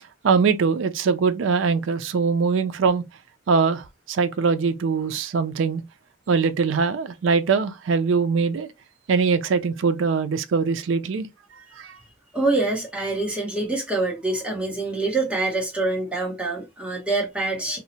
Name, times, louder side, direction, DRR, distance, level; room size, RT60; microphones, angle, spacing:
voice 1, 0.2-3.0 3.5-5.8 6.3-8.7 9.1-11.3 11.8-12.0, right 5 dB, 85° right, 0.4 m, -22 dB
voice 2, 12.3-17.8, right 2 dB, 5° right, 0.8 m, -25 dB
2.7 x 2.0 x 2.8 m
head